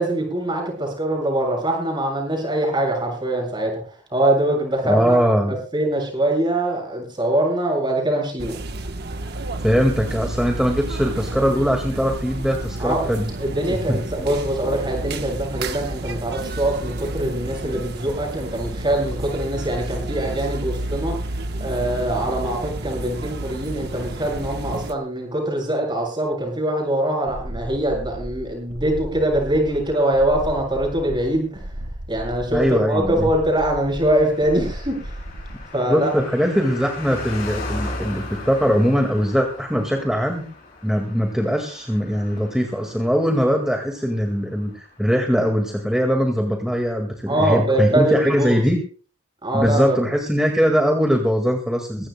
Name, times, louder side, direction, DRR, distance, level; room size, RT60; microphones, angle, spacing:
voice 1, 0.0-5.2 5.7-8.5 12.8-13.1 13.4-21.1 21.6-31.8 32.1-35.2 35.7-36.1 47.3-48.6 49.4-50.1, right 1 dB, 20° right, 1 dB, 7.3 m, -23 dB
voice 2, 4.8-5.6 9.6-13.3 13.7-14.0 32.5-33.3 35.9-40.4 40.8-48.8 49.5-52.1, equal, 5° right, 2 dB, 1.8 m, -21 dB
sound 1, 8.4-24.9, right 2 dB, 50° right, 1.1 m, -30 dB
sound 2, 27.3-35.7, right 1 dB, 65° right, 1.4 m, -35 dB
Car passing by, 33.9-45.7 46.0-46.1, left 2 dB, 45° left, 6.4 m, -37 dB
21.0 x 17.0 x 2.2 m, 0.40 s
head